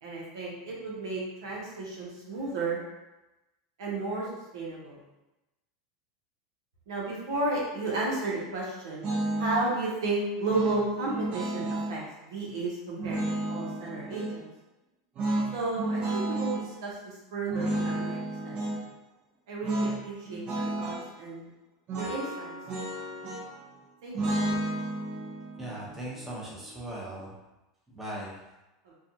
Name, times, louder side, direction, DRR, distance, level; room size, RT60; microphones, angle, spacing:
voice 1, 0.0-2.8 3.8-4.3 4.5-5.0 6.9-9.1 9.4-13.2 13.5-14.5 15.5-18.8 19.5-21.5 22.0-22.5 24.0-24.6 28.8-28.9, right 2 dB, 80° right, -5 dB, 0.8 m, -33 dB
sound 1, 9.0-9.7 10.5-12.0 13.0-14.4 15.2-16.6 17.5-18.8 19.6-20.0 20.3-21.1 21.9-23.6 24.1-27.2, right 1 dB, 45° right, 0.7 m, -32 dB
voice 2, 25.6-27.3 27.9-28.4, right 1 dB, 10° right, -6 dB, 0.9 m, -38 dB
2.4 x 2.3 x 2.7 m, 1.0 s
hypercardioid pair, 105°, 2 cm